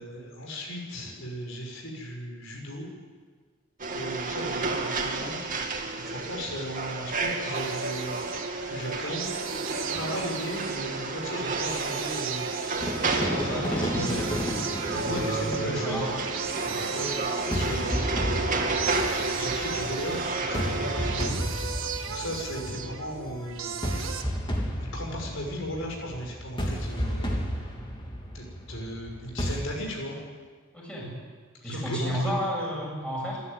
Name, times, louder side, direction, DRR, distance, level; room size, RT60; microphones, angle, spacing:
voice 1, 0.0-2.9 3.9-9.3 9.9-12.8 13.2-14.2 15.0-16.0 16.9-21.7 22.1-23.7 24.8-27.7 28.3-30.2 31.6-32.3, equal, 70° left, 0 dB, 6.1 m, -36 dB
sound 1, 3.8-21.3, right 3 dB, 40° right, 2.5 m, -31 dB
sound 2, 7.5-24.2, right 6 dB, 70° right, 1.7 m, -37 dB
sound 3, 12.8-16.7 17.5-29.6, equal, 25° left, 3.2 m, -33 dB
voice 2, 13.5-14.5 14.9-16.1 16.7-16.9 30.7-31.1 31.6-33.4, equal, 5° left, -4 dB, 7.4 m, -32 dB
27.0 x 11.5 x 9.6 m, 1.5 s
head